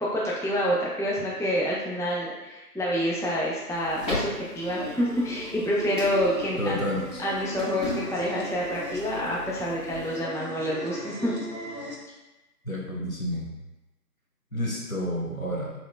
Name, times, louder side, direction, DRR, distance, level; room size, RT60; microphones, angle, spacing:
voice 1, 0.0-6.8 7.2-11.3, equal, 5° left, -5 dB, 0.3 m, -27 dB
sound 1, 3.7-10.2, left 2 dB, 90° left, 1.4 m, -38 dB
sound 2, 4.5-12.0, right 1 dB, 60° right, 0.5 m, -38 dB
voice 2, 6.6-7.0 12.6-13.5 14.5-15.7, equal, 60° left, -3 dB, 0.6 m, -30 dB
2.8 x 2.1 x 2.2 m, 1.0 s
figure-of-eight pair, 180°, 49 cm